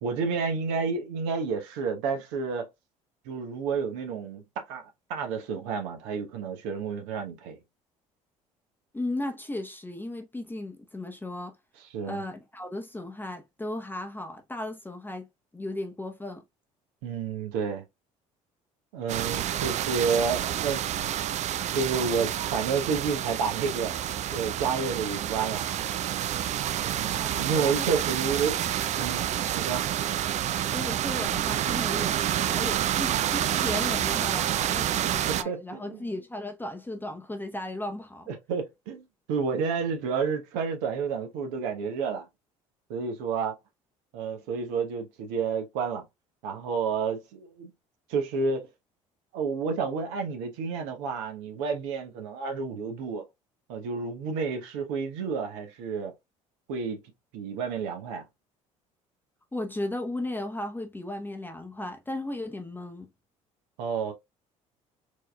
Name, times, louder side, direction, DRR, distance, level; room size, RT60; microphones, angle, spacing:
voice 1, 0.0-2.7 3.2-7.6 11.9-12.2 17.0-17.8 18.9-21.1 21.7-23.9 24.3-25.6 26.8-28.6 28.9-29.8 35.0-36.1 38.3-42.3 42.9-43.6 44.1-46.0 46.4-47.7 48.1-48.7 49.3-53.2 53.7-56.1 56.7-57.0 57.3-58.2 63.8-64.1, right 5 dB, 75° right, 1.0 m, -30 dB
voice 2, 8.9-11.6 12.0-15.3 15.5-16.4 27.1-27.3 27.5-28.0 30.7-32.2 32.4-38.3 59.5-63.1, left 1 dB, 10° left, 0.8 m, -35 dB
sound 1, 19.1-35.4, right 11 dB, 45° right, 0.4 m, -28 dB
4.6 x 2.8 x 2.3 m
hypercardioid pair, 60°, 17 cm